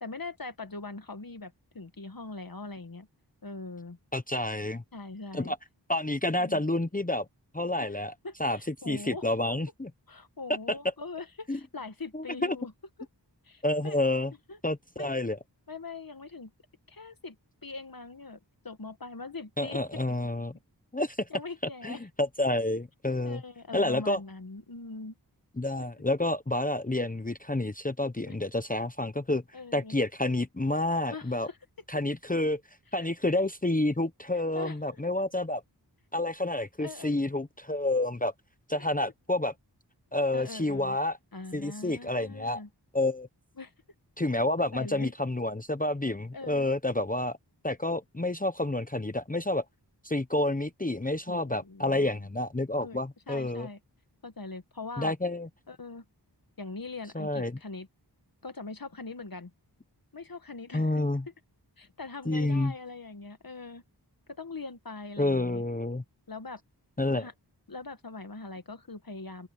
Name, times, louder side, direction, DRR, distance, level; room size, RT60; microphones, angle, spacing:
voice 1, 0.0-3.1 3.4-4.0 4.9-5.5 6.4-6.6 7.8-8.0 8.2-9.3 10.1-12.7 13.0-13.1 13.4-14.0 14.5-14.6 15.0-15.1 15.7-16.5 16.9-17.4 17.6-18.4 18.6-20.0 21.3-22.0 23.2-25.2 25.8-25.9 28.2-28.4 29.5-29.9 31.1-31.6 33.0-33.1 34.3-35.0 36.8-37.2 40.3-41.0 41.3-42.7 43.6-43.7 44.7-45.1 46.3-46.7 51.3-52.3 52.8-53.0 53.3-53.8 54.2-55.1 55.7-56.1 56.6-57.9 58.4-59.5 60.1-61.0 61.8-63.8 64.4-65.6 66.3-66.6 67.1-67.3 67.7-69.5, left 3 dB, 55° left, 1.8 m, -42 dB
voice 2, 4.1-4.8 5.3-5.6 5.9-7.3 7.5-8.1 8.4-8.6 8.9-9.9 10.7-10.8 11.5-11.6 12.1-12.6 13.6-14.3 14.6-15.4 19.6-20.5 20.9-21.3 21.8-23.4 23.7-24.2 25.6-29.4 29.7-31.5 31.9-32.6 32.9-35.6 36.1-38.3 38.7-39.5 40.1-41.2 41.5-42.6 42.9-43.3 44.2-47.4 47.6-49.6 50.0-53.7 55.0-55.5 57.1-57.5 60.7-61.2 62.2-62.7 65.2-66.0 67.0-67.3, left 2 dB, 20° left, 0.9 m, -29 dB
open air
wide cardioid pair, 45°, 41 cm